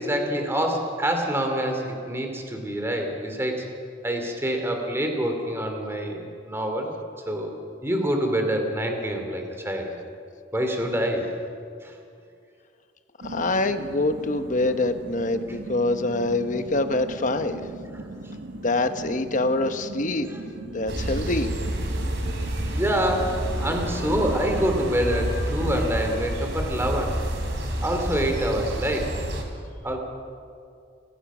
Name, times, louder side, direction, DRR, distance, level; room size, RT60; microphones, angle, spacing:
voice 1, 0.0-3.7 4.0-6.9 7.3-7.5 7.8-9.9 10.5-11.3 11.8-11.9 20.3-20.4 22.4-27.2 27.8-29.2 29.8-30.0, equal, 15° right, 3 dB, 2.7 m, -26 dB
voice 2, 13.2-17.6 18.6-20.3 20.7-21.5, left 2 dB, 45° left, 9 dB, 1.1 m, -25 dB
sound 1, 13.2-25.9, right 2 dB, 85° right, 1.4 m, -39 dB
sound 2, 20.9-29.4, right 1 dB, 70° right, 3.6 m, -29 dB
28.0 x 15.0 x 6.2 m, 2.4 s
head